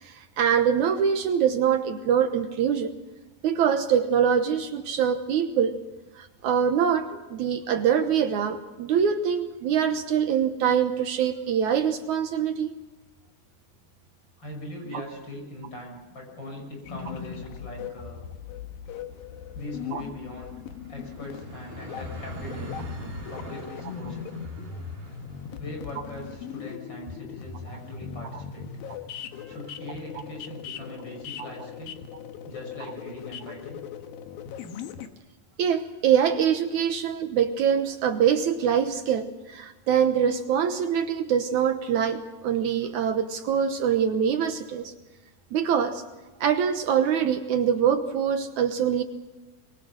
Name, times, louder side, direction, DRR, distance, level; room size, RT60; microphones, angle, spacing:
voice 1, 0.0-2.9 3.4-5.8 6.2-12.7 14.9-15.0 19.9-20.0 35.6-44.9 45.5-46.0 46.4-49.0, right 8 dB, 65° right, 8 dB, 2.2 m, -24 dB
voice 2, 14.4-18.2 19.5-20.5 20.9-22.8 23.3-24.3 25.6-28.7 29.5-31.9 32.5-33.8, left 1 dB, 30° left, 1 dB, 7.0 m, -40 dB
sound 1, 16.8-35.1, left 7 dB, 85° left, 3.1 m, -39 dB
sound 2, 17.7-29.0, right 1 dB, 40° right, 4.1 m, -45 dB
24.0 x 23.0 x 6.2 m, 1.1 s
omnidirectional pair, 4.0 m